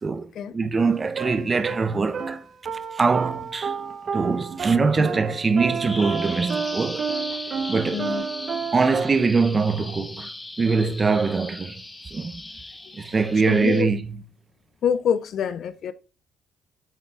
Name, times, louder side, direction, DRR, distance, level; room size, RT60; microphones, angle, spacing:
voice 1, 0.5-2.4 2.9-3.7 4.1-7.0 7.7-8.1 8.7-10.3 10.6-11.8 12.1-12.3 12.9-14.0, right 4 dB, 30° right, 0.7 m, -22 dB
sound 1, 0.8-9.2, right 6 dB, 55° right, 1.0 m, -31 dB
voice 2, 4.8-5.1 7.9-8.2 12.9-13.1 13.5-13.9 14.8-15.9, left 8 dB, 70° left, 0.5 m, -26 dB
Bird vocalization bird call bird song, 5.8-13.8, left 2 dB, 20° left, 1.2 m, -38 dB
8.9 x 3.8 x 3.6 m
cardioid pair, 90°, 0 cm